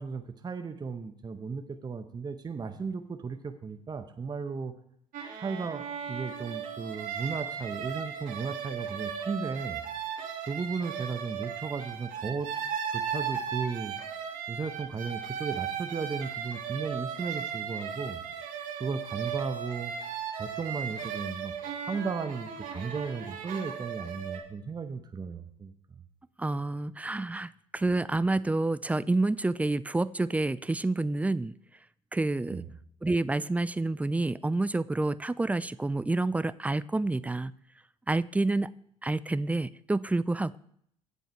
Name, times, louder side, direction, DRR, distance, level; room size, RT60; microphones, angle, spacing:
voice 1, 0.0-4.7 5.4-9.8 10.4-12.5 12.9-13.9 14.5-18.2 18.8-19.9 20.3-21.5 21.8-25.7 32.5-32.7, right 5 dB, 25° right, 7 dB, 0.9 m, -35 dB
sound 1, 5.1-24.4, right 7 dB, 55° right, 2.0 m, -36 dB
voice 2, 26.4-31.5 32.1-32.6 33.0-37.5 38.1-38.7 39.0-40.6, right 2 dB, 10° right, 17 dB, 0.4 m, -28 dB
16.0 x 5.4 x 4.4 m, 0.68 s
figure-of-eight pair, 60°, 17 cm